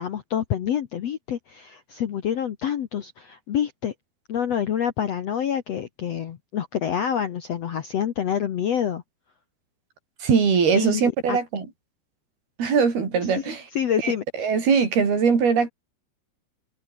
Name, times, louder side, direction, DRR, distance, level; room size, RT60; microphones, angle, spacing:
voice 1, 0.0-3.9 4.3-9.0 10.7-11.4 13.8-14.2, left 9 dB, 60° left, 1.7 m, -27 dB
voice 2, 10.2-11.7 12.6-13.7 14.0-14.1 14.4-15.7, right 6 dB, 70° right, 6.9 m, -21 dB
omnidirectional pair, 4.6 m